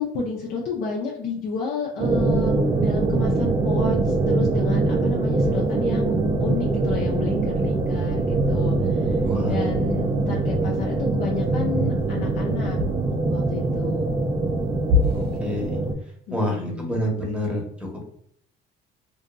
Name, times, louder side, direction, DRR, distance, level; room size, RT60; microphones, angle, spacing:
voice 1, 0.0-9.2 9.5-12.8 13.3-14.2 16.3-17.0, left 5 dB, 70° left, -2 dB, 0.6 m, -31 dB
sound 1, 2.0-15.9, right 3 dB, 25° right, 0.4 m, -23 dB
sound 2, 5.4-5.8 6.1-6.5 6.9-7.1 7.6-8.0 8.3-8.7 9.0-9.4 9.7-10.2 10.5-10.7 11.2-11.6 12.0-12.4 12.8-13.1 14.9-15.4, left 3 dB, 75° right, 0.7 m, -28 dB
voice 2, 9.2-9.7 15.1-15.8 16.3-18.1, equal, 5° right, -1 dB, 0.8 m, -28 dB
2.7 x 2.6 x 2.2 m, 0.67 s
cardioid pair, 110°, 17 cm